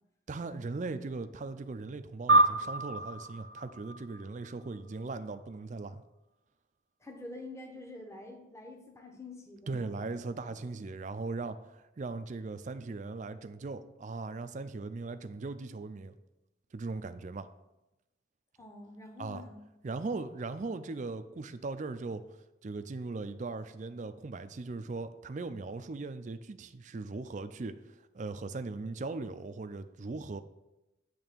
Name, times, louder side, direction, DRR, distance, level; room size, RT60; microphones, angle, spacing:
voice 1, 0.3-6.0 9.7-16.2 16.7-17.5 19.2-19.4 19.8-22.2 22.6-27.8 28.1-30.4, right 3 dB, 40° right, 10 dB, 0.4 m, -39 dB
sound 1, 2.3-5.0, right 2 dB, 70° right, 0.9 m, -28 dB
voice 2, 7.0-10.2 18.6-19.6, left 2 dB, 15° left, 2 dB, 0.9 m, -47 dB
8.8 x 3.4 x 6.7 m, 0.96 s
head